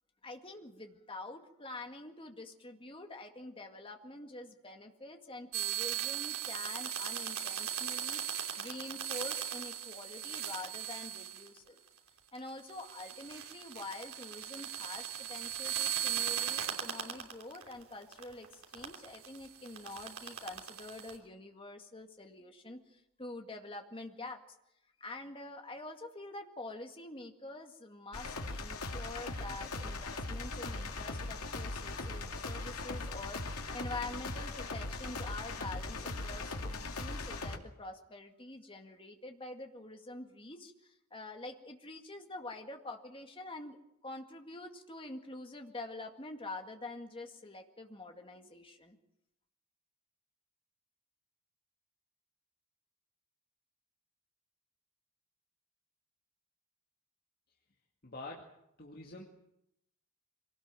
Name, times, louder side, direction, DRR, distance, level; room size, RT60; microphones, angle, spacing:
voice 1, 0.2-11.8 12.3-24.4 25.0-49.0, left 2 dB, 25° left, 4 dB, 2.0 m, -46 dB
sound 1, 5.5-11.7 12.3-17.7 18.0-21.2, right 9 dB, 70° right, 3.2 m, -38 dB
sound 2, 28.1-37.6, left 2 dB, 85° left, 2.5 m, -39 dB
voice 2, 58.0-58.5 58.8-59.2, left 2 dB, 45° left, 0 dB, 2.2 m, -46 dB
23.5 x 18.5 x 7.6 m, 0.84 s
head